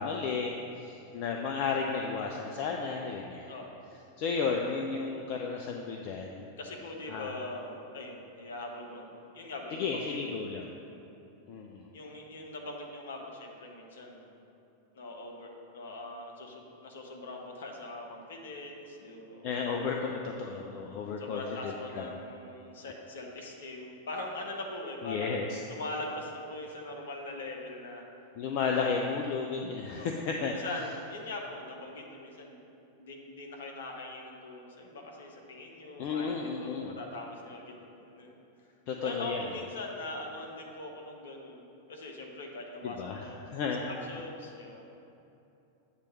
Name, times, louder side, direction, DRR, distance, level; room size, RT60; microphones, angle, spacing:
voice 1, 0.0-3.5 4.2-6.5 7.1-7.3 9.7-10.7 11.5-11.9 19.4-22.1 25.0-25.6 28.4-30.5 36.0-37.0 38.9-39.4 42.8-43.2 43.5-43.8, left 5 dB, 45° left, 1 dB, 0.4 m, -33 dB
voice 2, 6.4-10.3 11.9-14.4 14.9-19.5 21.2-28.0 29.9-30.1 30.4-32.6 33.0-38.4 39.0-43.6 43.9-44.8, left 2 dB, 60° left, 1 dB, 0.9 m, -42 dB
8.2 x 3.0 x 6.3 m, 2.8 s
figure-of-eight pair, 90°, 0 cm